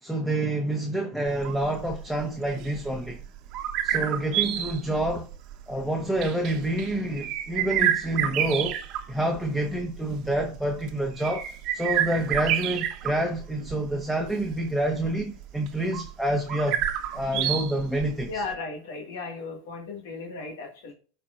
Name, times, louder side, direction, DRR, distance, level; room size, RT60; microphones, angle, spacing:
voice 1, 0.0-3.2 3.8-5.3 5.7-8.8 9.1-11.4 11.7-16.8 17.1-18.4, right 1 dB, ahead, 1.2 m, -28 dB
sound 1, 1.3-18.5, right 11 dB, 55° right, 1.0 m, -30 dB
voice 2, 18.3-20.9, left 4 dB, 80° left, 1.8 m, -36 dB
12.5 x 4.4 x 2.5 m
supercardioid pair, 110°, 0 cm